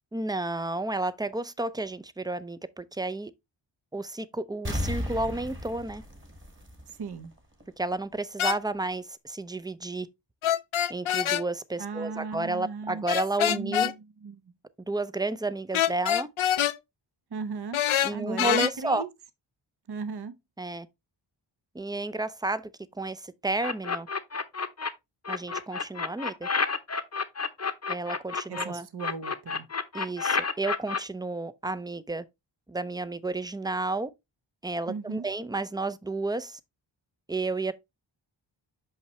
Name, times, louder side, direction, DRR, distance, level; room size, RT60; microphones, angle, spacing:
voice 1, 0.1-3.3 3.9-6.0 7.8-10.1 10.9-13.9 14.9-16.3 18.0-19.1 20.6-20.9 21.7-22.7 22.9-24.1 25.3-26.5 27.9-28.9 29.9-32.2 32.7-34.1 34.6-36.6 37.3-37.7, right 2 dB, 10° right, 0.4 m, -31 dB
sound 1, 4.6-7.3 7.6-7.7, left 1 dB, 25° right, 1.5 m, -34 dB
voice 2, 6.9-7.3 11.8-13.0 13.5-14.4 17.3-17.8 18.1-19.1 19.9-20.3 28.5-29.7 34.9-35.2, right 4 dB, 55° right, 0.8 m, -36 dB
sound 2, 8.4-8.6 10.4-11.4 13.1-13.9 15.7-16.8 17.7-18.7, left 10 dB, 85° left, 0.6 m, -25 dB
sound 3, 23.6-24.9 25.2-28.6 29.0-31.0, left 5 dB, 35° left, 0.7 m, -29 dB
5.7 x 5.6 x 3.0 m
wide cardioid pair, 85°, 48 cm